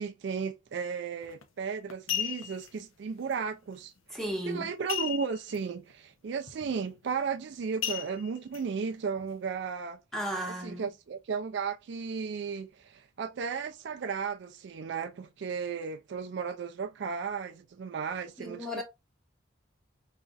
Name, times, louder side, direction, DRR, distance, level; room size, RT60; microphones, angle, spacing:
voice 1, 0.0-3.9 4.5-10.0 10.6-18.8, right 5 dB, 60° right, 0.3 m, -35 dB
sound 1, 1.2-1.4 1.9-2.7 4.9-5.6 5.9-6.0 6.5-6.7 7.8-8.6 9.2-9.3, left 10 dB, 85° left, 0.6 m, -34 dB
voice 2, 4.1-4.7 10.1-10.9 18.4-18.8, equal, ahead, 1.1 m, -35 dB
5.0 x 2.5 x 2.2 m
head